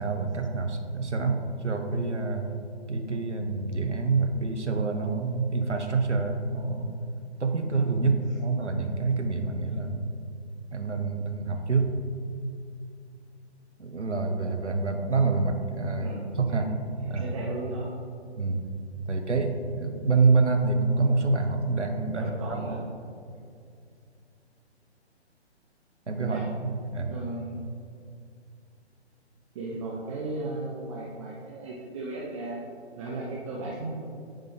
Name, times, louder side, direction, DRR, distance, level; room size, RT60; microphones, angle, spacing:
voice 1, 0.0-2.5 2.9-7.0 7.4-10.3 10.7-11.9 13.8-16.1 16.4-16.7 17.1-17.2 18.4-18.6 19.1-22.8 26.1-27.1, right 4 dB, 85° right, 5 dB, 1.0 m, -27 dB
voice 2, 16.0-16.6 17.0-17.9 19.0-19.1 22.1-22.8 26.3-26.5 27.1-27.6 29.5-34.1, right 2 dB, 30° right, -4 dB, 0.8 m, -36 dB
9.2 x 3.7 x 5.2 m, 2.3 s
figure-of-eight pair, 135°, 34 cm